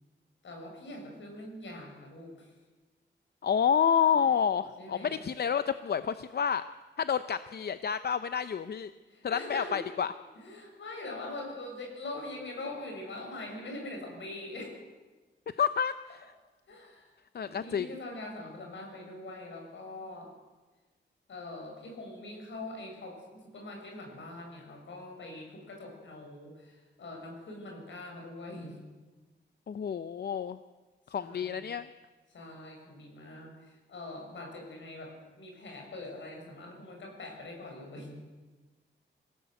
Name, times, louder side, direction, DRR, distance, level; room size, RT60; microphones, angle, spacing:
voice 1, 0.4-2.5 4.8-5.3 9.1-9.8 10.4-14.8 16.7-17.1 17.4-20.3 21.3-28.8 31.2-31.7 32.3-38.1, left 2 dB, 75° left, 1 dB, 7.7 m, -43 dB
voice 2, 3.4-6.6 7.0-8.9 9.2-10.1 15.6-16.3 17.3-17.9 29.7-30.6 31.1-31.9, left 7 dB, 55° left, 12 dB, 0.7 m, -29 dB
27.5 x 17.5 x 8.1 m, 1.2 s
wide cardioid pair, 170°, 19 cm